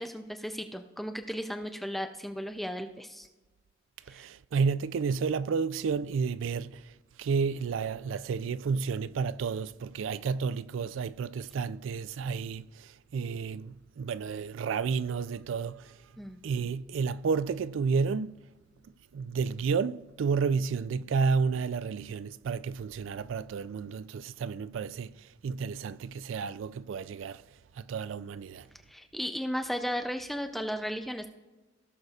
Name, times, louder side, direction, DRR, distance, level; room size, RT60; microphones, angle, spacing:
voice 1, 0.0-3.3 4.1-4.3 16.2-16.4 28.9-31.3, equal, ahead, 0.4 m, -35 dB
voice 2, 4.1-6.9 7.2-16.0 16.4-18.4 19.1-27.4 27.8-28.7, right 5 dB, 90° right, 0.4 m, -31 dB
17.0 x 6.6 x 2.4 m
head